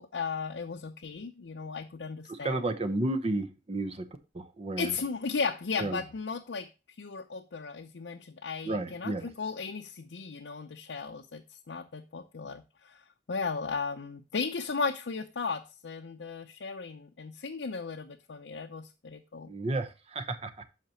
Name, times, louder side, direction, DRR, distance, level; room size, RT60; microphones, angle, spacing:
voice 1, 0.0-2.6 4.8-6.7 7.0-13.0 13.3-19.5, left 5 dB, 80° left, 0.6 m, -36 dB
voice 2, 2.3-4.1 4.3-5.0 5.8-6.0 8.6-9.3 19.5-20.5, right 2 dB, 35° right, 0.7 m, -32 dB
8.0 x 5.8 x 2.9 m
head